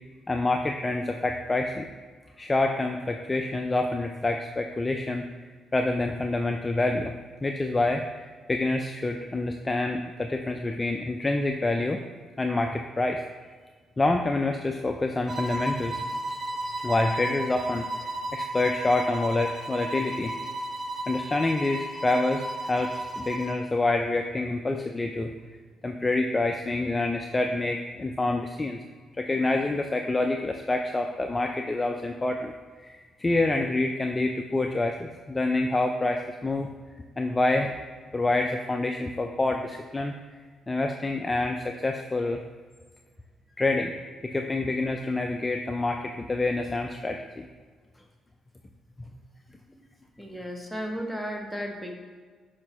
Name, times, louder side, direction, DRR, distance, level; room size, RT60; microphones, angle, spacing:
voice 1, 0.3-1.9 2.4-5.2 5.7-7.1 7.4-12.0 12.4-13.2 14.0-16.0 16.8-20.3 21.1-25.3 25.8-28.8 29.1-32.5 32.8-36.7 37.2-37.8 38.1-40.2 40.7-42.4 43.6-43.9 44.2-47.5, left 2 dB, 20° left, 4 dB, 0.4 m, -27 dB
sound 1, 15.3-23.6, right 1 dB, 45° right, 0.9 m, -34 dB
voice 2, 50.2-51.9, equal, ahead, 1 dB, 1.0 m, -35 dB
6.3 x 5.3 x 3.0 m, 1.5 s
cardioid pair, 90°, 0 cm